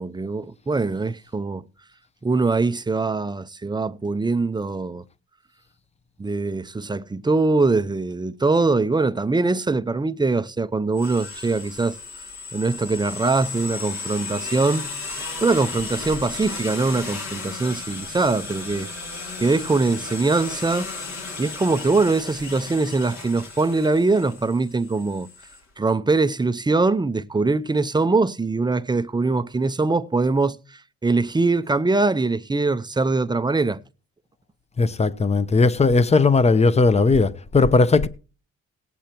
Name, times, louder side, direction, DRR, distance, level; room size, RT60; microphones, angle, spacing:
voice 1, 0.0-1.6 2.2-5.0 6.2-12.0 12.5-14.9 15.4-18.9 19.4-20.9 21.4-25.3 25.8-33.8, right 3 dB, 15° right, 0.6 m, -22 dB
sound 1, 10.9-25.6, left 4 dB, 65° left, 2.8 m, -35 dB
voice 2, 34.8-38.1, left 3 dB, 20° left, 0.8 m, -17 dB
18.5 x 8.5 x 2.9 m
cardioid pair, 90°, 30 cm